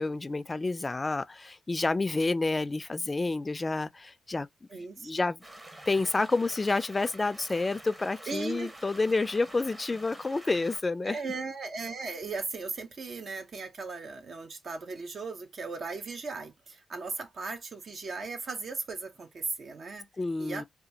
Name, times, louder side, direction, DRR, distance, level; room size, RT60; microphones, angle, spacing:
voice 1, 0.0-4.5 4.7-5.4 5.9-11.2 20.2-20.6, left 3 dB, 30° left, 0.3 m, -29 dB
voice 2, 4.7-5.1 8.3-8.7 11.0-20.1 20.4-20.6, right 4 dB, 60° right, 0.6 m, -37 dB
sound 1, 5.4-10.8, right 1 dB, 25° right, 1.0 m, -48 dB
2.9 x 2.3 x 2.6 m
supercardioid pair, 60°, 0 cm